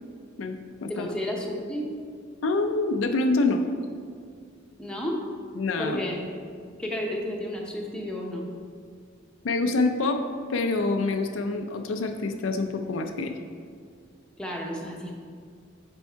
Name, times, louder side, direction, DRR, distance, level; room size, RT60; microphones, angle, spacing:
voice 1, 0.4-1.1 2.4-3.6 5.6-6.0 9.4-10.2 10.5-13.4, left 3 dB, 85° left, 5 dB, 0.5 m, -26 dB
voice 2, 0.9-1.9 4.8-5.3 5.8-6.3 6.8-8.5 14.4-15.1, left 1 dB, 5° left, -2 dB, 0.8 m, -32 dB
6.9 x 4.6 x 4.5 m, 2.1 s
head